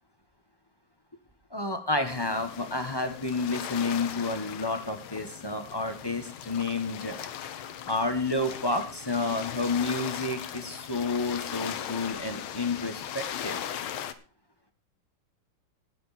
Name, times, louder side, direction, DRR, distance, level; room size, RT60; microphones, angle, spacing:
voice 1, 1.5-7.2 7.9-13.6, left 3 dB, 15° left, 6 dB, 1.0 m, -30 dB
sound 1, 2.1-14.1, left 9 dB, 80° left, 1.8 m, -38 dB
19.0 x 7.1 x 4.2 m, 0.36 s
omnidirectional pair, 2.3 m